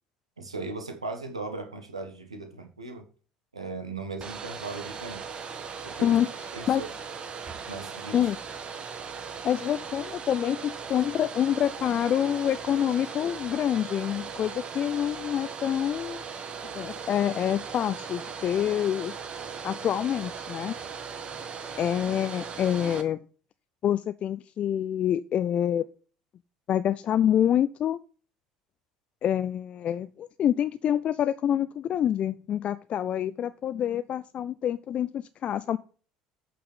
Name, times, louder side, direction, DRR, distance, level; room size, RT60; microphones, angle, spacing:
voice 1, 0.4-3.1 3.5-5.2 5.8-6.2 6.5-6.9 7.7-8.2, right 3 dB, 85° right, 6 dB, 1.6 m, -37 dB
Domestic sounds home sounds, 4.2-23.0, right 6 dB, 30° right, 1.5 m, -38 dB
voice 2, 9.4-16.2 16.7-19.1 19.6-20.8 21.8-23.2 23.8-25.8 26.7-28.0 29.2-35.8, left 10 dB, 40° left, 14 dB, 0.5 m, -27 dB
8.4 x 5.9 x 5.6 m, 0.38 s
figure-of-eight pair, 60°, 3 cm